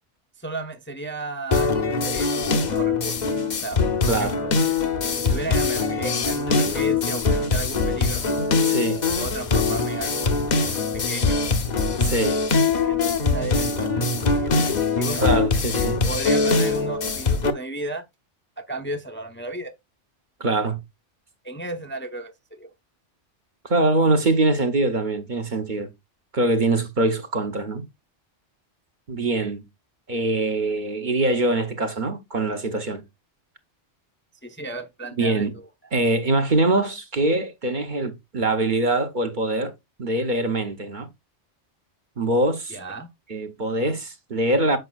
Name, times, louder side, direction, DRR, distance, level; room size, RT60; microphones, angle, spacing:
voice 1, 0.4-3.4 3.6-4.5 5.1-8.3 9.2-10.3 10.9-11.4 12.8-15.3 15.8-18.0 18.6-19.7 21.4-22.7 34.4-35.7 42.7-43.1, right 2 dB, 10° left, 0.7 m, -34 dB
sound 1, 1.5-17.5, left 4 dB, 45° left, 0.8 m, -22 dB
voice 2, 8.6-9.0 12.0-12.4 15.2-16.0 20.4-20.8 23.6-25.9 26.3-27.8 29.1-29.6 30.1-33.0 35.2-35.6 35.9-39.7 40.0-41.1 42.2-42.8 43.3-44.8, right 2 dB, 45° right, 0.9 m, -23 dB
7.8 x 5.3 x 2.3 m
omnidirectional pair, 1.2 m